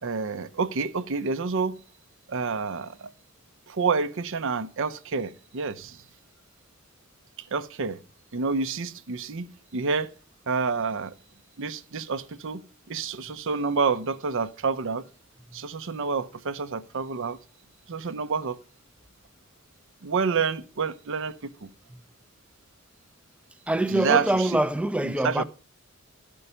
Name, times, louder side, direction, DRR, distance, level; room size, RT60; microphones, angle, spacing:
voice 1, 0.0-1.8 2.3-3.1 3.7-6.0 7.5-8.0 8.3-10.1 10.5-11.1 11.6-12.6 12.9-15.0 15.5-17.4 17.9-18.6 20.0-21.7 23.9-24.2 25.0-25.4, right 5 dB, 65° right, 0.6 m, -28 dB
voice 2, 23.7-25.4, right 1 dB, 5° right, 0.4 m, -24 dB
12.0 x 5.4 x 5.5 m
head